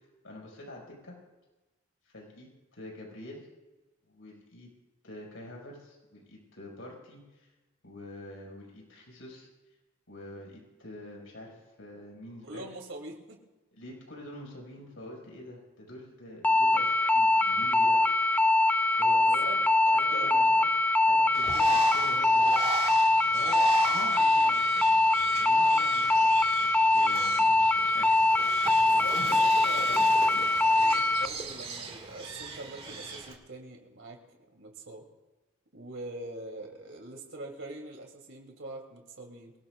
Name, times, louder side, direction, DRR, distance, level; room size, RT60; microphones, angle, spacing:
voice 1, 0.2-1.1 2.1-3.5 4.1-4.7 5.0-7.5 7.8-9.5 10.1-12.6 13.8-18.0 19.0-19.6 19.9-20.7 21.1-22.6 23.3-23.6 23.9-25.0 25.4-26.3 26.6-28.1 28.5-29.4, left 1 dB, 85° left, -2 dB, 6.0 m, -45 dB
voice 2, 12.4-13.4 19.2-20.5 28.8-30.2 30.6-34.2 34.5-35.1 35.7-39.5, right 2 dB, 75° right, 1 dB, 3.0 m, -44 dB
sound 1, 16.4-31.3, left 2 dB, 10° left, 0.4 m, -23 dB
Bird, 21.3-33.3, right 4 dB, 30° right, 2.1 m, -38 dB
24.0 x 18.0 x 2.5 m, 1.1 s
head